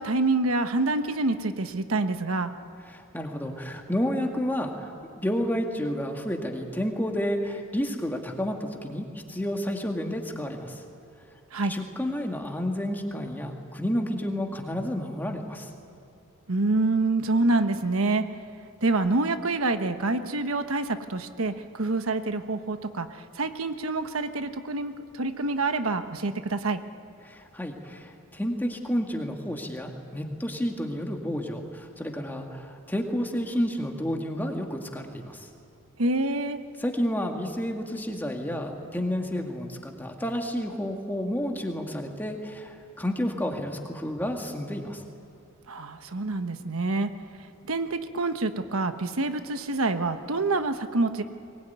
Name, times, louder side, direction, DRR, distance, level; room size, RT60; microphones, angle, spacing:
voice 1, 0.0-2.5 11.5-11.7 16.5-18.2 18.8-26.8 36.0-36.6 45.7-47.1 47.6-51.2, right 2 dB, 90° right, 8 dB, 1.2 m, -27 dB
voice 2, 2.9-10.8 11.7-15.7 27.2-35.5 36.8-45.0, equal, 10° left, 2 dB, 2.1 m, -30 dB
23.0 x 20.5 x 9.5 m, 2.5 s
head